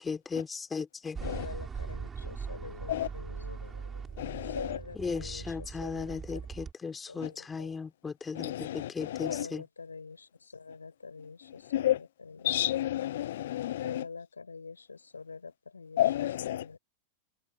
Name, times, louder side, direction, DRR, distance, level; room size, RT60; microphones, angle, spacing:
voice 1, 0.0-1.2 5.0-9.6, left 5 dB, 15° left, 3.0 m, -37 dB
sound 1, 1.1-6.7, right 6 dB, 20° right, 5.1 m, -40 dB
voice 2, 1.2-6.4 7.1-7.9 9.2-12.5 13.8-16.8, left 4 dB, 75° left, 5.8 m, -45 dB
voice 3, 4.2-4.5 8.4-9.4 11.7-12.0 12.4-14.0 16.0-16.6, left 13 dB, 60° left, 0.8 m, -30 dB
figure-of-eight pair, 90°, 0 cm